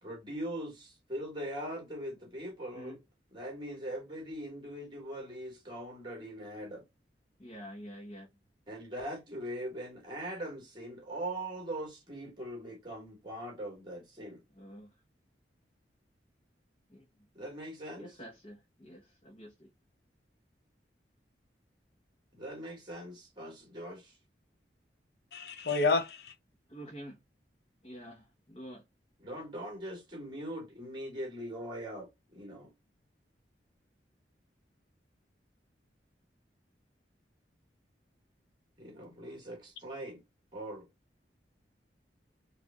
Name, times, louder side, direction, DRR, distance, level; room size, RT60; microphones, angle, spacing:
voice 1, 0.0-3.0 3.3-6.8 8.7-14.4 17.4-18.1 22.3-24.2 29.2-32.7 38.8-40.2 40.5-40.8, right 1 dB, 25° right, 1.8 m, -41 dB
voice 2, 7.4-8.3 14.6-14.9 16.9-17.0 18.0-19.7 26.7-27.2 27.8-28.8, equal, 35° left, 1.0 m, -47 dB
voice 3, 25.3-26.3, left 3 dB, 65° left, 0.7 m, -29 dB
4.6 x 2.6 x 2.3 m
head